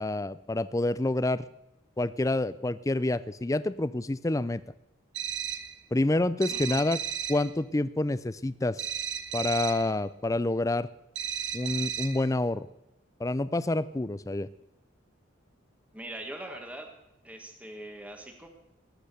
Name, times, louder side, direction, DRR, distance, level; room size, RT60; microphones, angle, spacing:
voice 1, 0.0-1.4 2.0-4.6 5.9-7.0 7.3-8.9 9.3-10.9 11.5-12.7 13.2-14.5, left 2 dB, 15° left, 16 dB, 0.4 m, -28 dB
sound 1, 5.1-5.8 6.4-7.5 8.8-9.9 11.2-12.3, right 8 dB, 60° right, 1.0 m, -34 dB
voice 2, 6.5-6.8 15.9-16.9 17.2-18.5, right 1 dB, 5° right, 3 dB, 1.5 m, -42 dB
19.5 x 8.1 x 6.8 m, 0.95 s
head